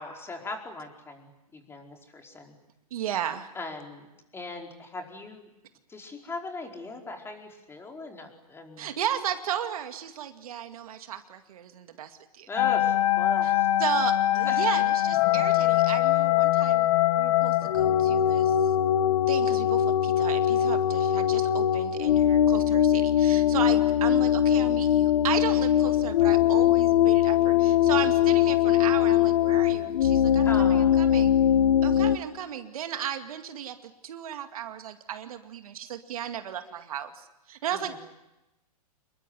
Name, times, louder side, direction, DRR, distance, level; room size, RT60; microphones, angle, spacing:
voice 1, 0.0-2.5 3.5-4.1 4.3-5.5 5.9-8.9 12.5-13.7 14.5-14.7 30.4-31.3 37.7-37.9, left 2 dB, 10° left, 2 dB, 4.8 m, -39 dB
voice 2, 2.9-3.5 8.8-12.5 13.4-13.5 13.8-16.9 17.2-18.7 19.3-31.3 31.8-37.9, right 10 dB, 65° right, 7 dB, 2.3 m, -35 dB
sound 1, 12.6-32.2, left 11 dB, 60° left, 1.4 m, -22 dB
27.5 x 22.0 x 9.6 m, 0.95 s
hypercardioid pair, 125°, 19 cm